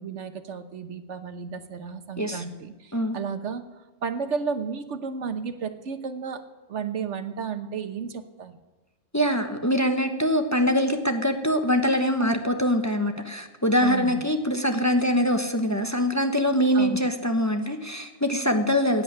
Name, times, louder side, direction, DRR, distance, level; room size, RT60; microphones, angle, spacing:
voice 1, 0.0-3.6 4.0-6.4 6.7-8.5 13.8-14.2 16.7-17.0, right 6 dB, 75° right, 9 dB, 1.3 m, -32 dB
voice 2, 9.1-19.0, equal, 15° left, 5 dB, 1.1 m, -23 dB
16.0 x 8.9 x 9.9 m, 1.2 s
omnidirectional pair, 1.3 m